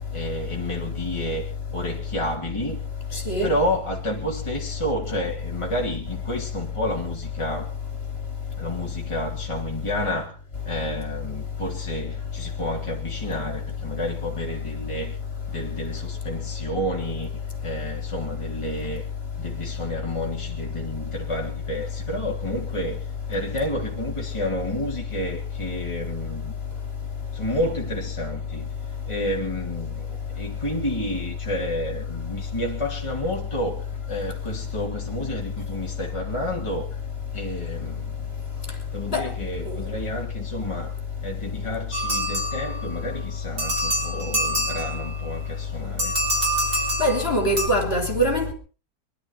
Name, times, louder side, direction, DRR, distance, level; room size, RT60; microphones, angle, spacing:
voice 1, 0.1-2.8 3.4-7.8 8.6-10.4 10.6-15.2 15.5-19.1 19.3-26.5 27.3-28.7 29.0-36.9 37.3-38.3 38.9-41.0 41.2-46.1, equal, 15° left, 2.8 m, -30 dB
sound 1, 41.9-43.1 43.6-45.3 46.0-47.7, right 1 dB, 65° right, 6.5 m, -26 dB
voice 2, 47.0-48.5, equal, 35° left, 3.6 m, -22 dB
24.0 x 12.0 x 4.4 m
omnidirectional pair, 1.7 m